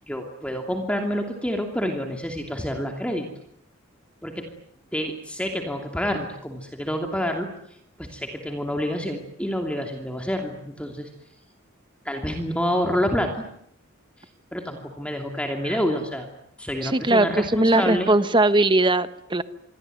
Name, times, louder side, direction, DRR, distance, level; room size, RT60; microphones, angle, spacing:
voice 1, 0.1-3.3 4.2-4.5 4.9-11.1 12.0-13.4 14.5-16.3 16.6-18.1, equal, 5° left, 3 dB, 2.8 m, -28 dB
voice 2, 16.8-19.4, right 2 dB, 25° right, 12 dB, 1.2 m, -20 dB
27.0 x 22.5 x 9.2 m, 0.70 s
head